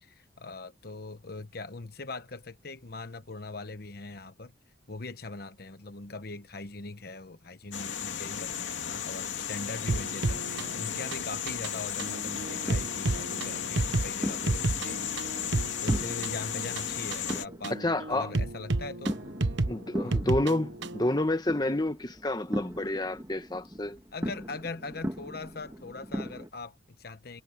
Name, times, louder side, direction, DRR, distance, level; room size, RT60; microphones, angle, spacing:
voice 1, 0.0-4.5 4.9-15.3 15.8-17.8 18.1-19.3 20.0-20.2 24.1-27.4, left 3 dB, 50° left, 1.0 m, -41 dB
sound 1, 7.7-17.5, left 8 dB, 80° left, 2.6 m, -35 dB
sound 2, 9.9-21.1, right 2 dB, 70° right, 1.1 m, -32 dB
sound 3, 12.0-26.5, equal, 15° right, 1.7 m, -40 dB
voice 2, 17.7-18.3 19.7-24.0, left 1 dB, 20° left, 1.2 m, -29 dB
head